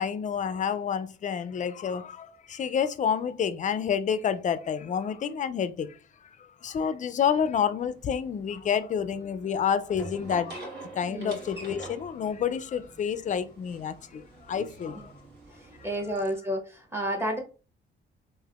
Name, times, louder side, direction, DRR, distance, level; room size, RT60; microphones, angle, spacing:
voice 1, 0.0-6.0 6.6-10.7 10.9-15.1, left 7 dB, 40° left, 0.4 m, -29 dB
sound 1, 7.8-16.3, right 2 dB, 55° right, 1.5 m, -45 dB
voice 2, 15.8-17.4, equal, 10° right, 1.0 m, -30 dB
3.3 x 2.5 x 2.4 m
cardioid pair, 90°, 20 cm